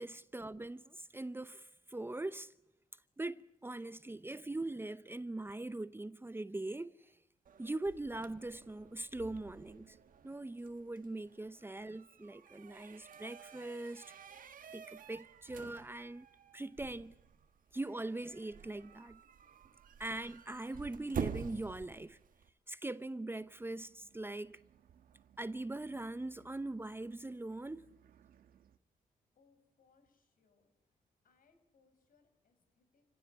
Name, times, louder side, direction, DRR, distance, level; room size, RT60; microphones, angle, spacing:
voice 1, 0.0-2.5 3.2-7.1 7.6-10.0 10.2-16.3 16.5-17.2 17.7-19.2 20.0-22.2 22.7-24.6 25.4-27.9, right 2 dB, 15° right, 0.7 m, -42 dB
sound 1, 7.5-22.5, right 7 dB, 70° right, 1.6 m, -49 dB
sound 2, 23.3-28.8, right 9 dB, 85° right, 1.3 m, -65 dB
voice 2, 29.3-31.0 31.2-33.0, left 4 dB, 75° left, 5.9 m, -72 dB
28.5 x 16.0 x 8.6 m
cardioid pair, 80°, 15 cm